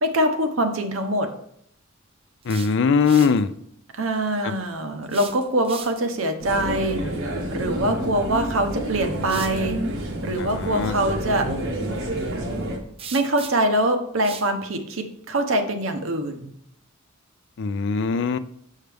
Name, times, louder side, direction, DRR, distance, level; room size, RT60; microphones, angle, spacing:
voice 1, 0.0-1.3 3.9-7.0 7.5-9.8 10.2-11.5 13.1-16.5, right 1 dB, 70° right, 7 dB, 0.9 m, -24 dB
sound 1, 2.2-3.4 5.0-6.2 8.3-8.4 9.2-9.6 13.0-13.8 14.2-14.5, right 6 dB, 30° right, 0.5 m, -39 dB
voice 2, 2.5-3.5 4.4-4.5 10.4-10.9 17.6-18.4, left 5 dB, 60° left, 13 dB, 0.4 m, -21 dB
sound 2, 6.4-12.8, right 1 dB, 85° right, 1.4 m, -29 dB
6.5 x 6.5 x 3.4 m, 0.69 s
head